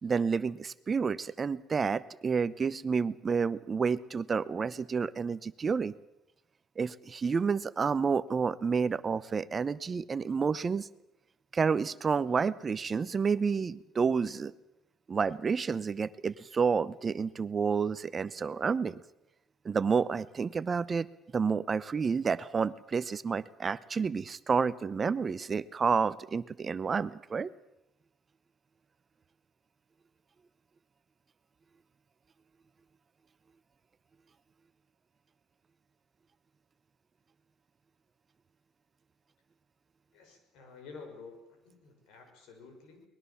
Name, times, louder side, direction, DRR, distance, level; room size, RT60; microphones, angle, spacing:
voice 1, 0.0-5.9 6.8-10.9 11.5-14.5 15.1-19.0 19.6-21.1 21.3-27.5, right 5 dB, 30° right, 16 dB, 0.7 m, -30 dB
voice 2, 40.1-43.0, left 4 dB, 80° left, 5 dB, 6.0 m, -50 dB
23.0 x 20.5 x 7.1 m, 0.88 s
cardioid pair, 115°, 0 cm